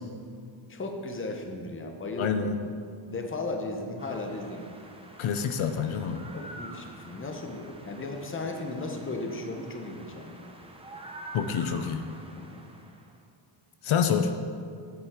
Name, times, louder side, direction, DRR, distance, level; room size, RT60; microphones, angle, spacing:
voice 1, 0.7-2.5 3.1-4.8 6.3-10.3 12.3-12.6, left 2 dB, 25° left, 4 dB, 0.7 m, -36 dB
voice 2, 2.2-2.6 5.2-6.3 11.3-12.0 13.8-14.3, left 7 dB, 75° left, 7 dB, 0.6 m, -27 dB
sound 1, 4.0-13.1, right 2 dB, 10° right, 0.5 m, -47 dB
8.6 x 7.3 x 3.6 m, 2.3 s
wide cardioid pair, 150°, 49 cm